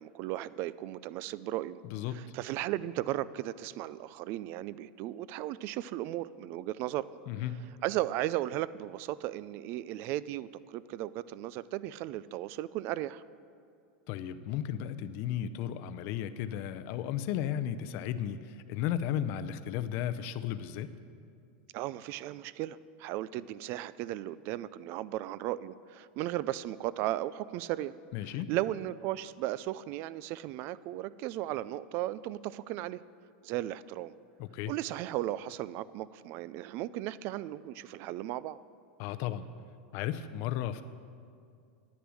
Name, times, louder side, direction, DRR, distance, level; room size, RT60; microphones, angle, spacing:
voice 1, 0.0-1.8 2.1-7.1 7.8-13.2 21.7-27.9 28.2-33.0 33.4-34.1 34.7-38.6, right 14 dB, 45° right, 18 dB, 0.3 m, -36 dB
voice 2, 7.3-7.7 14.1-20.9 28.1-28.5 34.4-34.7 39.0-39.5 39.9-40.8, left 10 dB, 50° left, 11 dB, 0.6 m, -34 dB
10.0 x 9.8 x 6.3 m, 2.3 s
supercardioid pair, 145°, 5 cm